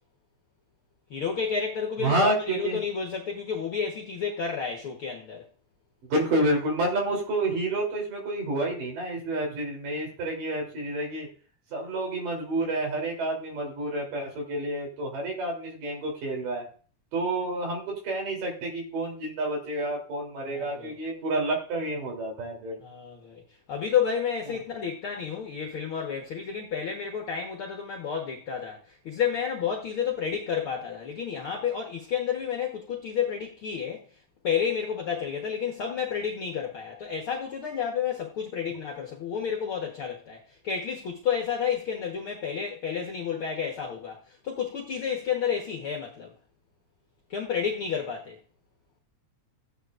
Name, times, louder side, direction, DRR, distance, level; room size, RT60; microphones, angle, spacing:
voice 1, 1.1-5.4 20.4-20.9 22.8-23.4 23.7-34.0 34.4-46.3 47.3-48.4, left 7 dB, 55° left, 1.7 m, -31 dB
voice 2, 2.0-2.8 6.1-11.3 11.7-16.7 17.1-22.8, right 1 dB, 80° right, 4.9 m, -29 dB
15.0 x 9.9 x 2.5 m
omnidirectional pair, 3.7 m